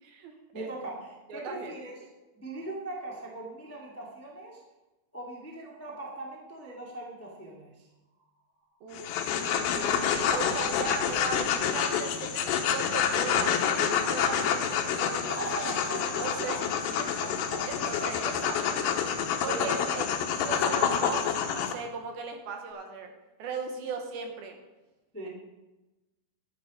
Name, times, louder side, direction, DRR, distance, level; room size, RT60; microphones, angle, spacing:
voice 1, 0.0-0.7 1.3-1.8 8.8-9.1 9.4-15.7 16.0-16.6 16.9-17.1 17.7-18.8 19.4-20.0 20.3-23.1 23.4-24.6, right 5 dB, 70° right, 4 dB, 2.6 m, -38 dB
voice 2, 0.5-1.9 2.3-4.6 5.1-7.9 15.3-16.5 17.2-17.7 19.4-20.0 25.1-25.3, right 2 dB, 10° left, -3 dB, 0.8 m, -40 dB
sound 1, 8.0-9.5 10.0-10.7 11.7-11.8 12.0-12.1 12.5-18.2, equal, 55° right, 6.1 m, -50 dB
sound 2, 8.9-21.7, left 8 dB, 80° left, 3.1 m, -28 dB
sound 3, 9.7-11.9, left 5 dB, 65° left, 2.5 m, -49 dB
11.5 x 9.4 x 5.1 m, 1.1 s
omnidirectional pair, 5.0 m